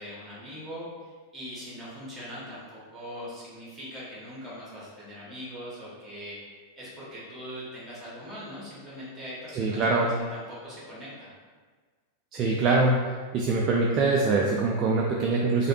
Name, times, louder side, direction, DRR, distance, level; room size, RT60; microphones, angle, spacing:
voice 1, 0.0-6.4 6.8-11.3, equal, 15° right, -7 dB, 1.3 m, -41 dB
voice 2, 9.6-10.1 12.3-12.9 13.3-15.7, right 3 dB, 35° right, -1 dB, 0.3 m, -23 dB
3.1 x 2.3 x 2.8 m, 1.5 s
figure-of-eight pair, 90°, 0 cm